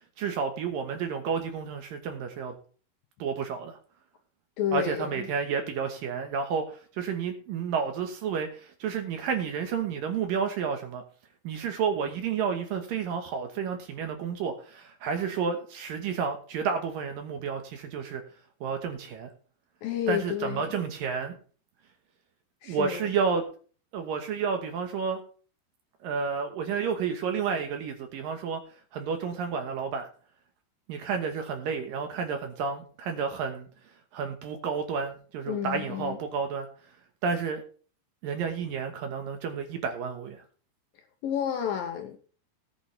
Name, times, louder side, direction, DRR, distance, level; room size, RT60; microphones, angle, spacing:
voice 1, 0.2-2.5 3.2-3.8 4.7-11.0 11.4-18.2 18.6-19.3 20.1-21.3 22.6-23.4 23.9-25.2 26.0-28.6 28.9-30.1 30.9-33.7 34.1-36.7 37.2-37.6 38.2-40.4, right 6 dB, 65° right, 2.5 m, -31 dB
voice 2, 4.6-5.3 19.8-20.7 22.6-23.1 35.5-36.2 41.2-42.2, left 10 dB, 70° left, 2.3 m, -31 dB
17.5 x 8.4 x 3.2 m
omnidirectional pair, 4.9 m